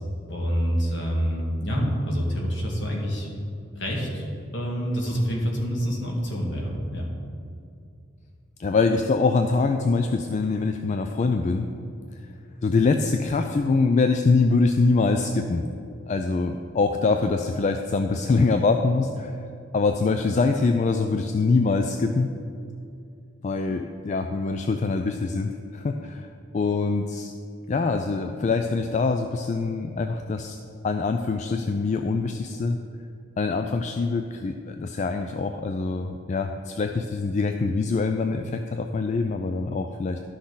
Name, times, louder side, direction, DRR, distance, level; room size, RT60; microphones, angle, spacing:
voice 1, 0.3-3.3 3.7-4.3 4.5-7.1, equal, 60° left, -1 dB, 1.8 m, -27 dB
voice 2, 8.6-11.7 12.6-15.6 16.1-19.4 19.7-22.3 23.4-26.3 26.5-27.3 27.7-30.6 30.8-32.8 33.4-40.2, left 3 dB, 35° left, 6 dB, 0.3 m, -24 dB
11.5 x 6.2 x 3.9 m, 2.4 s
head